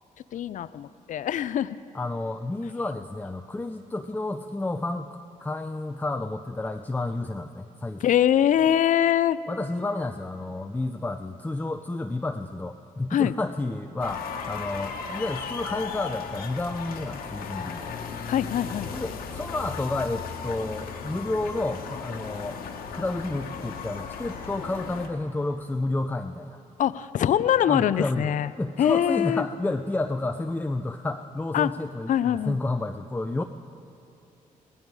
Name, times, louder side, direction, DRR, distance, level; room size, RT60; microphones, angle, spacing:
voice 1, 0.3-1.8 8.0-9.4 13.1-13.3 18.3-18.9 26.8-28.5 28.8-29.5 31.5-31.7 32.1-32.6, left 10 dB, 60° left, 15 dB, 0.5 m, -23 dB
voice 2, 1.9-8.1 9.5-18.0 18.9-22.6 22.9-26.6 27.7-33.4, left 2 dB, 10° left, 6 dB, 0.5 m, -31 dB
sound 1, 14.0-25.1, left 6 dB, 90° left, 1.5 m, -36 dB
18.0 x 15.0 x 4.8 m, 2.7 s
cardioid pair, 85°, 15 cm